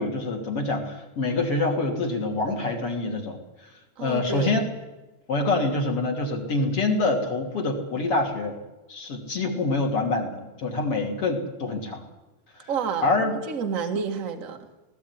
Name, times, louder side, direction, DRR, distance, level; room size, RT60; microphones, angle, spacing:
voice 1, 0.0-3.4 4.0-4.6 5.3-8.5 8.9-12.0 12.5-12.7 13.0-13.4, left 2 dB, 35° left, 2 dB, 3.6 m, -26 dB
voice 2, 4.0-4.6 12.7-14.6, right 6 dB, 45° right, 5 dB, 1.0 m, -30 dB
19.5 x 16.0 x 9.8 m, 1.1 s
omnidirectional pair, 4.5 m